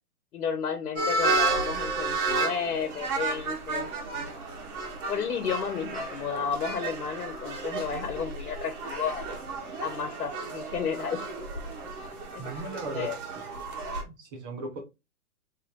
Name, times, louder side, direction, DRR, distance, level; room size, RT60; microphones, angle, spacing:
voice 1, 0.3-3.9 5.1-9.3 9.8-11.2 12.3-13.2, left 6 dB, 75° left, 6 dB, 1.1 m, -32 dB
sound 1, 1.0-14.0, right 3 dB, 50° right, 1.7 m, -32 dB
voice 2, 12.4-13.1 14.1-14.8, right 2 dB, 15° right, 2 dB, 0.5 m, -36 dB
3.8 x 3.2 x 3.5 m, 0.24 s
hypercardioid pair, 145°, 45 cm